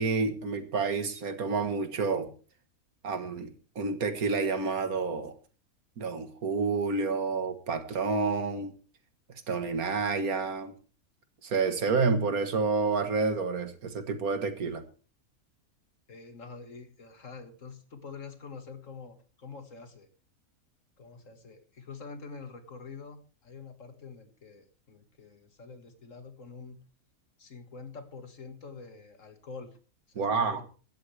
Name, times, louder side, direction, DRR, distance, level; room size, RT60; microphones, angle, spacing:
voice 1, 0.0-2.3 3.0-5.3 6.0-8.7 9.5-10.7 11.4-14.8 30.2-30.6, right 4 dB, 75° right, 9 dB, 2.0 m, -29 dB
voice 2, 16.1-20.1 21.0-26.8 27.4-29.7 30.1-30.6, left 4 dB, 60° left, 7 dB, 2.2 m, -46 dB
17.0 x 12.5 x 3.4 m, 0.37 s
omnidirectional pair, 1.5 m